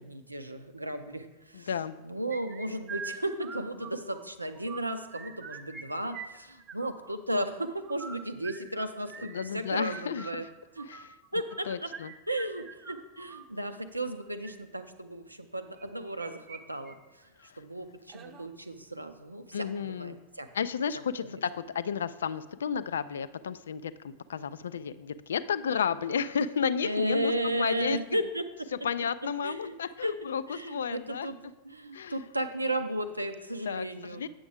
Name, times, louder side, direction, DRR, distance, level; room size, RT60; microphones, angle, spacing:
voice 1, 0.0-1.7 2.0-10.5 10.8-10.9 11.3-11.9 12.3-17.2 17.6-20.5 21.2-21.4 26.8-28.7 29.4-29.7 30.0-31.4 31.6-34.2, right 1 dB, 85° right, 9 dB, 0.5 m, -34 dB
voice 2, 1.5-2.0 9.2-10.5 10.8-11.1 11.6-12.1 17.4-17.6 19.5-20.2 20.5-28.0 28.8-31.3 31.9-32.2 33.7-33.9 34.1-34.3, left 7 dB, 65° left, 15 dB, 0.3 m, -32 dB
sound 1, 2.3-4.2 4.5-5.8 6.1-7.1 7.8-13.5 14.2-14.5 15.8-16.6 16.9-17.0 17.4-17.5 18.1-18.5, right 5 dB, 30° right, 0.7 m, -44 dB
8.7 x 6.9 x 3.5 m, 1.1 s
figure-of-eight pair, 90°, 0 cm